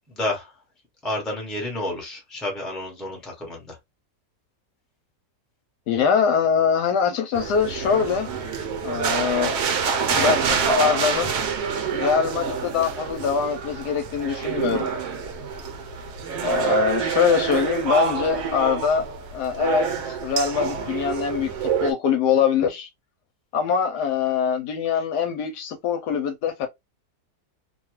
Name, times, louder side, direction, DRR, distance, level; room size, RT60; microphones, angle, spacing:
voice 1, 0.1-0.5 1.0-3.8, left 1 dB, ahead, 0.7 m, -30 dB
voice 2, 5.9-8.3 8.8-9.6 10.1-11.3 11.9-14.9 16.4-19.0 19.3-22.9 23.5-26.7, left 7 dB, 75° left, 1.1 m, -23 dB
sound 1, 7.3-21.9, right 6 dB, 70° right, 1.2 m, -26 dB
2.9 x 2.3 x 3.0 m
omnidirectional pair, 1.9 m